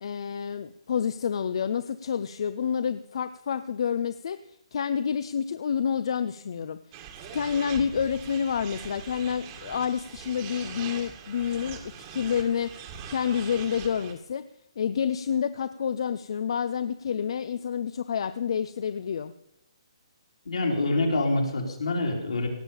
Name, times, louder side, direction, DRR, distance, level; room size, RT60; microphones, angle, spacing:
voice 1, 0.0-6.8 7.3-11.8 12.1-12.7 13.1-14.5 14.8-19.3, left 7 dB, 60° left, 12 dB, 0.6 m, -28 dB
sound 1, 6.9-14.1, right 7 dB, 30° right, 1.8 m, -42 dB
voice 2, 20.5-22.5, left 2 dB, 80° left, 0 dB, 3.9 m, -26 dB
17.5 x 7.3 x 7.1 m, 0.82 s
hypercardioid pair, 155°, 3 cm